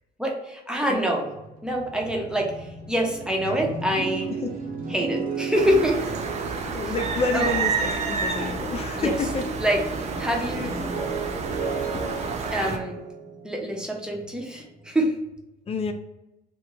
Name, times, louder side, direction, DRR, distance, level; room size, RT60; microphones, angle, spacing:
voice 1, 0.2-1.3 1.6-2.5 2.9-4.3 4.9-6.0 7.3-7.5 9.0-9.1 9.6-9.8 10.2-10.7 12.5-13.0 13.4-15.1, equal, 5° right, 0 dB, 0.7 m, -25 dB
sound 1, 1.2-9.0 9.3-14.4, right 4 dB, 60° right, 0.9 m, -35 dB
sound 2, 5.5-12.8, right 4 dB, 40° right, 0.5 m, -29 dB
voice 2, 6.7-9.5 10.6-10.7 11.7-12.2 12.7-12.8 14.6-14.7 15.7-15.9, left 4 dB, 35° left, 6 dB, 0.4 m, -30 dB
2.9 x 2.2 x 3.7 m, 0.95 s
cardioid pair, 110°, 17 cm